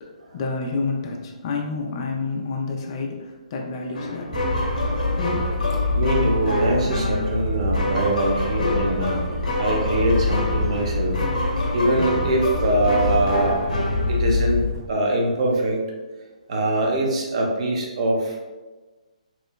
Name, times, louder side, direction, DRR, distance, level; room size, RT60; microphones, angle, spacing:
voice 1, 0.0-4.4 5.3-5.5, left 3 dB, 40° left, 1 dB, 0.4 m, -29 dB
sound 1, 3.9-14.6, left 1 dB, 80° left, 0.6 m, -28 dB
sound 2, 4.3-14.9, left 2 dB, 5° left, 0.7 m, -26 dB
voice 2, 5.9-9.2 9.6-11.1 11.7-15.8 16.5-18.5, right 1 dB, 50° right, -1 dB, 0.6 m, -23 dB
3.0 x 2.0 x 2.3 m, 1.2 s
figure-of-eight pair, 140°, 4 cm